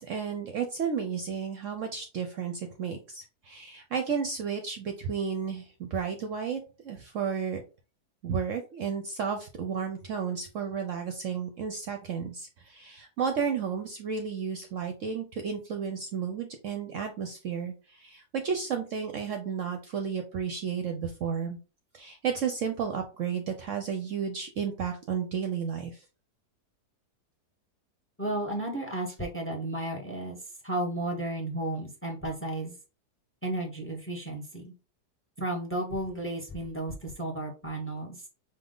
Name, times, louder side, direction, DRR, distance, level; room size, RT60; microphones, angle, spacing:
voice 1, 0.0-7.6 8.2-21.6 21.9-26.0, right 6 dB, 65° right, 5 dB, 0.9 m, -32 dB
voice 2, 28.2-30.4 30.6-32.7 33.4-34.7 35.4-38.2, right 1 dB, 10° left, 2 dB, 0.9 m, -33 dB
5.3 x 2.4 x 3.8 m, 0.33 s
omnidirectional pair, 1.7 m